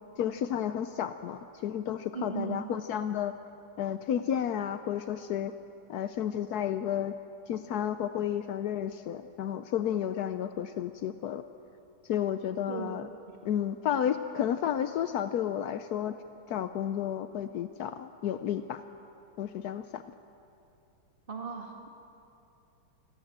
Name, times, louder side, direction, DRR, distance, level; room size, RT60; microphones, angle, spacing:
voice 1, 0.2-3.3 3.8-5.5 5.9-7.1 7.5-11.4 12.0-13.1 13.4-16.2 16.5-18.8 19.4-20.0, left 9 dB, 70° left, 9 dB, 0.9 m, -32 dB
voice 2, 2.1-2.6 12.7-12.9 21.3-21.9, right 7 dB, 25° right, 1 dB, 1.6 m, -37 dB
28.5 x 21.0 x 7.4 m, 2.8 s
omnidirectional pair, 2.4 m